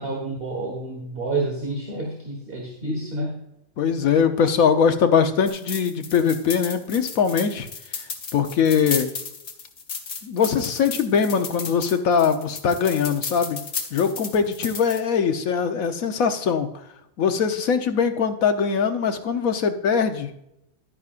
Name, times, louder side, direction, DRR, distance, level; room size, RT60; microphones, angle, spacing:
voice 1, 0.0-3.3, right 2 dB, 45° right, 0 dB, 1.6 m, -29 dB
voice 2, 3.8-7.7 8.3-9.1 10.2-13.6 13.9-16.7 17.2-20.3, left 6 dB, 80° left, 7 dB, 1.3 m, -21 dB
sound 1, 5.5-15.0, left 5 dB, 55° left, 1.3 m, -34 dB
11.0 x 9.4 x 2.5 m, 0.81 s
omnidirectional pair, 1.4 m